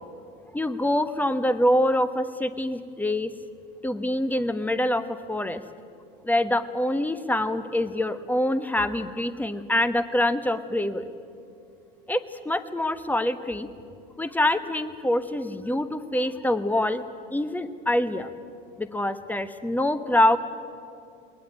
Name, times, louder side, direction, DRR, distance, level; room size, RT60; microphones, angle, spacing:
voice 1, 0.5-3.3 3.8-5.6 6.2-11.1 12.1-13.7 14.2-17.0 17.3-18.3 18.8-20.4, left 1 dB, 5° left, 12 dB, 1.2 m, -25 dB
21.0 x 19.5 x 9.3 m, 2.5 s
figure-of-eight pair, 70°, 30 cm